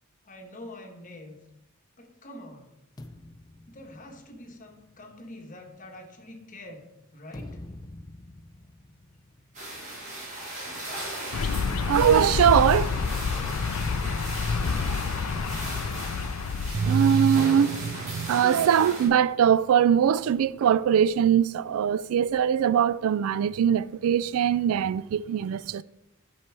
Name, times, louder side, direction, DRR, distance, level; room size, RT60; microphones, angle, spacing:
voice 1, 0.2-1.4 2.0-2.7 3.7-6.9 7.1-7.6, left 1 dB, 35° left, 1.2 m, -45 dB
sound 1, 3.0-6.6 7.1-14.5 14.8-15.0 15.3-17.0 17.8-19.5, left 1 dB, 20° left, 0.4 m, -46 dB
sound 2, 9.5-19.1, right 1 dB, 35° right, 2.9 m, -37 dB
sound 3, 11.3-16.9, left 5 dB, 75° left, 0.4 m, -28 dB
voice 2, 11.9-12.9 16.7-25.8, right 8 dB, 70° right, 0.3 m, -22 dB
11.5 x 4.6 x 4.6 m
head